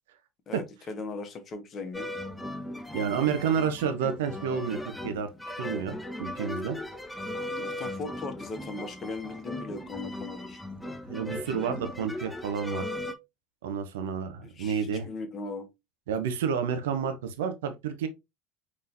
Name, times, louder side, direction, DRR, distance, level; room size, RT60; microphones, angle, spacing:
voice 1, 0.5-2.1 7.6-10.6 14.4-15.7, left 3 dB, 35° left, 1.2 m, -38 dB
sound 1, 1.9-13.1, left 1 dB, 5° left, 0.7 m, -37 dB
voice 2, 2.9-5.3 5.6-6.8 11.1-12.8 13.6-15.1 16.1-18.1, right 7 dB, 70° right, 0.7 m, -30 dB
5.5 x 3.2 x 2.6 m
figure-of-eight pair, 75°, 0 cm